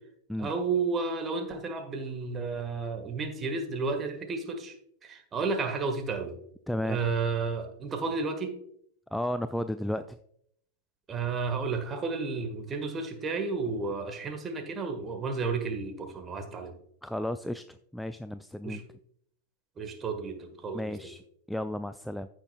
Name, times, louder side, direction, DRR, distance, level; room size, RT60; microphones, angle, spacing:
voice 1, 0.4-4.7 5.0-6.4 6.8-8.5 11.1-16.7 18.6-18.8 19.8-21.1, right 4 dB, 20° right, 5 dB, 1.5 m, -32 dB
voice 2, 6.7-7.0 9.1-10.2 17.0-18.8 20.7-21.2 21.5-22.3, left 1 dB, ahead, 11 dB, 0.3 m, -33 dB
15.0 x 6.3 x 2.3 m, 0.69 s
figure-of-eight pair, 90°, 0 cm